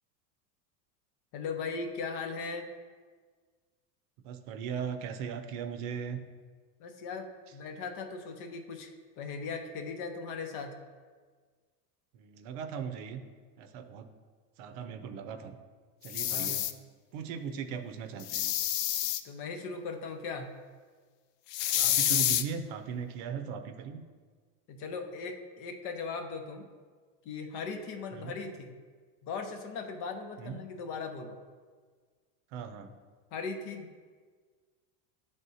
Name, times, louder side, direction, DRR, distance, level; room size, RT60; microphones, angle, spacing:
voice 1, 1.3-2.7 6.8-10.8 16.3-16.6 19.2-20.5 24.7-26.7 27.2-28.7 29.2-31.4 33.3-33.9, left 4 dB, 55° left, 5 dB, 0.9 m, -38 dB
voice 2, 4.2-6.2 12.1-13.2 13.6-14.1 14.6-15.6 16.0-16.7 17.1-18.5 21.8-24.0 28.1-28.3 30.4-30.6 32.5-32.9, right 7 dB, 55° right, 8 dB, 0.6 m, -38 dB
sound 1, 16.0-16.7 18.2-19.2 21.5-22.4, left 12 dB, 80° left, 0.5 m, -28 dB
10.5 x 3.5 x 2.7 m, 1.5 s
supercardioid pair, 120°, 48 cm